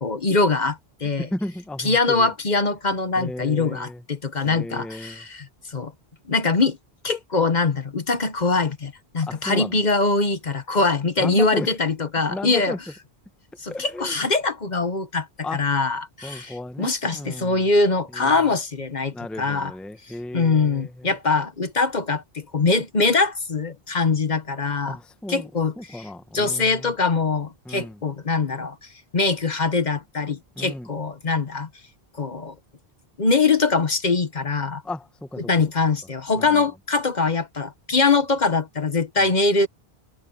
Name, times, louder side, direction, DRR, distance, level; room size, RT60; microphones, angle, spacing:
voice 1, 0.0-1.3 1.8-5.9 6.3-6.8 7.0-12.8 13.6-15.3 15.5-19.7 20.3-25.0 25.3-26.0 26.3-28.8 29.1-31.7 32.2-32.5 33.2-34.8 35.4-39.7, left 3 dB, 45° left, 1.2 m, -23 dB
voice 2, 1.2-2.3 3.2-4.0 4.4-5.2 9.3-9.8 11.2-11.7 12.3-12.8 13.7-14.2 15.4-15.6 16.2-17.7 18.1-18.5 19.1-21.1 24.8-25.5 25.8-26.9 27.6-28.0 30.6-30.9 34.8-35.5 36.3-36.7 39.2-39.3, left 1 dB, ahead, 0.8 m, -34 dB
omnidirectional pair, 1.0 m